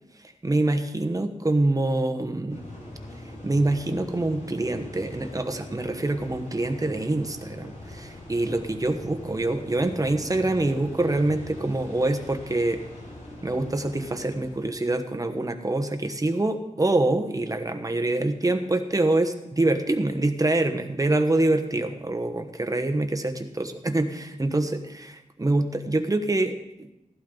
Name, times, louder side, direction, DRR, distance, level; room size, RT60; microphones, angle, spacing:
voice 1, 0.4-2.6 3.4-12.8 13.4-26.9, right 2 dB, 25° right, 7 dB, 1.2 m, -25 dB
sound 1, 2.5-14.7, left 1 dB, 70° left, 5.4 m, -42 dB
15.5 x 12.0 x 3.9 m, 0.91 s
wide cardioid pair, 95°, 13 cm